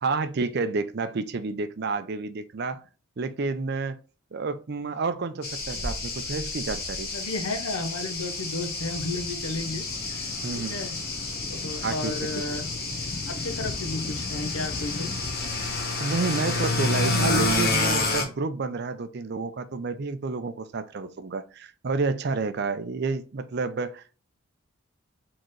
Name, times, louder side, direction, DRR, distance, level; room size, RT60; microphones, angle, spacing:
voice 1, 0.0-2.8 3.2-4.0 4.3-7.1 10.4-10.7 11.8-12.3 16.0-24.2, right 4 dB, 50° right, 0.5 m, -30 dB
sound 1, 5.4-18.2, left 2 dB, 45° left, 1.1 m, -29 dB
voice 2, 7.1-10.3 10.5-11.0 11.6-12.7 13.3-15.1, left 2 dB, 85° left, 0.8 m, -33 dB
sound 2, 8.6-15.8, left 3 dB, 30° left, 0.3 m, -39 dB
4.3 x 3.8 x 3.1 m
head